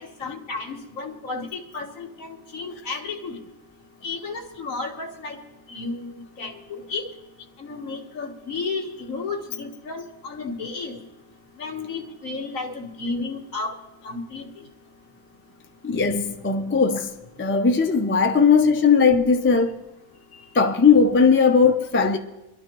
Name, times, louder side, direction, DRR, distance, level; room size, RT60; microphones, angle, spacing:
voice 1, 0.0-3.4 4.0-5.4 5.7-7.1 7.6-11.0 11.6-13.7 14.0-14.5, left 3 dB, 70° left, 1.8 m, -33 dB
voice 2, 15.8-17.1 17.4-19.8 20.5-22.2, left 5 dB, 15° left, 0.4 m, -18 dB
24.5 x 12.0 x 3.0 m
omnidirectional pair, 1.5 m